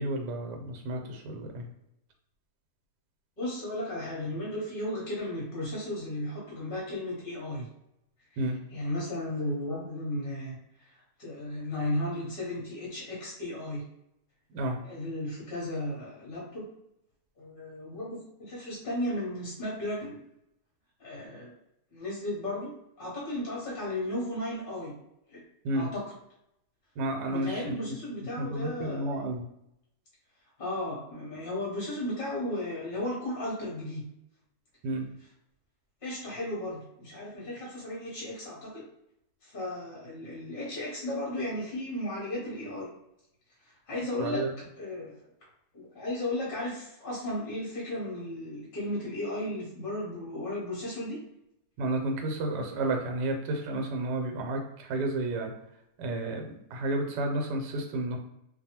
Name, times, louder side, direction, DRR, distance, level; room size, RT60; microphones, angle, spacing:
voice 1, 0.0-1.7 8.4-8.6 14.5-14.8 25.6-25.9 27.0-27.9 28.4-29.4 34.8-35.0 44.2-44.5 51.8-55.5 56.0-58.2, right 2 dB, 80° right, 2 dB, 1.2 m, -31 dB
voice 2, 3.4-7.7 8.7-10.6 11.2-13.8 14.8-16.7 17.4-20.2 21.0-21.5 21.9-22.7 23.0-24.9 25.3-25.4 25.7-26.0 27.3-29.3 30.6-34.1 36.0-38.8 39.4-42.9 43.6-45.2 45.7-51.2, left 1 dB, 45° left, -5 dB, 0.7 m, -35 dB
2.6 x 2.3 x 2.8 m, 0.81 s
omnidirectional pair, 1.8 m